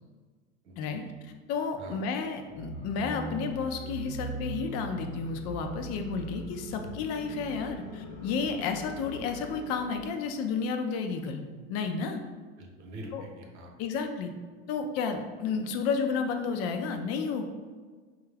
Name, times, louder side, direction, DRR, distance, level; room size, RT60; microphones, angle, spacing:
voice 1, 0.6-1.1 1.8-2.0 6.8-7.0 12.6-13.7, right 1 dB, 85° right, 1 dB, 0.8 m, -44 dB
voice 2, 1.5-11.4 11.7-12.2 13.1-13.2 13.8-14.3 14.7-17.4, left 5 dB, 50° left, 6 dB, 0.4 m, -31 dB
sound 1, 2.5-10.2, equal, 75° left, 0.8 m, -40 dB
3.7 x 2.3 x 3.3 m, 1.5 s
supercardioid pair, 110°, 34 cm